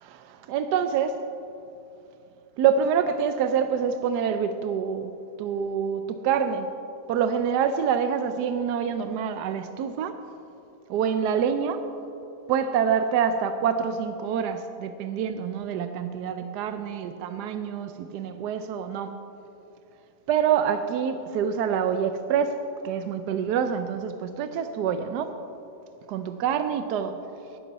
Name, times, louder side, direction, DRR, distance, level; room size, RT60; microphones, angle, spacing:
voice 1, 0.1-1.2 2.6-6.7 7.1-10.2 10.9-11.8 12.5-19.2 20.3-25.4 26.1-27.2, right 7 dB, 85° right, 9 dB, 1.2 m, -26 dB
18.5 x 11.0 x 4.1 m, 2.7 s
omnidirectional pair, 1.7 m